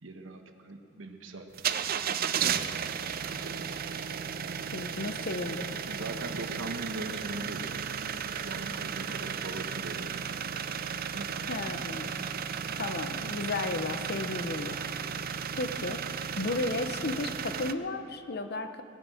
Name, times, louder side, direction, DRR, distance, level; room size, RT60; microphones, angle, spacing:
voice 1, 0.0-2.8 3.0-3.8 5.9-10.3 11.1-11.4 12.7-12.8, right 2 dB, 75° right, 5 dB, 1.3 m, -42 dB
sound 1, 1.5-17.7, right 7 dB, 50° right, 0.5 m, -34 dB
voice 2, 4.7-5.7 11.5-12.3 12.8-14.8 15.5-16.0 16.4-18.8, left 2 dB, 55° left, 8 dB, 0.9 m, -34 dB
19.0 x 10.0 x 7.7 m, 2.6 s
head